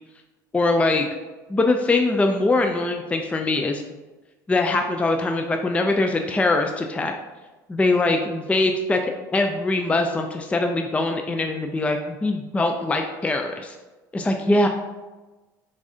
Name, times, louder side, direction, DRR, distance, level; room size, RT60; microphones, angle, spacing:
voice 1, 0.5-1.1 1.5-3.8 4.5-7.1 7.7-9.0 9.3-13.8 14.1-14.7, left 2 dB, 10° left, 4 dB, 0.3 m, -22 dB
4.6 x 2.6 x 2.6 m, 1.2 s
hypercardioid pair, 70°, 10 cm